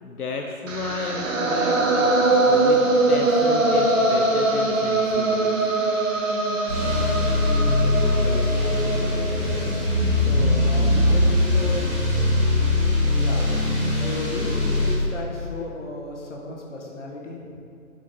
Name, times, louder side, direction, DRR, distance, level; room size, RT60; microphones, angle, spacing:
voice 1, 0.0-5.7 13.8-14.1 14.8-15.2, left 3 dB, 85° left, 2 dB, 0.6 m, -34 dB
sound 1, 0.7-10.7, right 2 dB, 60° right, 0.8 m, -22 dB
sound 2, 6.7-14.9, left 1 dB, 10° right, 0.7 m, -21 dB
voice 2, 8.2-9.7 10.1-12.3 13.2-13.5 13.9-17.6, left 2 dB, 55° left, -1 dB, 1.1 m, -34 dB
6.6 x 4.9 x 3.0 m, 2.4 s
figure-of-eight pair, 150°, 44 cm